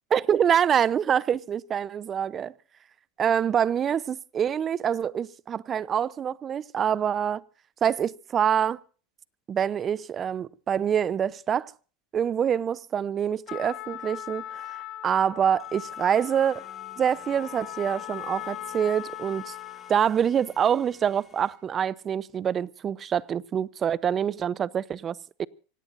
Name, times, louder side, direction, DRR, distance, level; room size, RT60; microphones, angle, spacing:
voice 1, 0.1-2.5 3.2-7.4 7.8-8.8 9.5-11.7 12.1-14.7 15.0-16.6 17.0-19.5 19.9-25.5, right 8 dB, 35° right, 0.7 m, -26 dB
Trumpet, 13.5-20.0, left 13 dB, 50° left, 2.4 m, -39 dB
sound 1, 15.6-21.5, left 4 dB, 20° left, 7.7 m, -53 dB
25.5 x 18.0 x 2.6 m
hypercardioid pair, 95°, 0 cm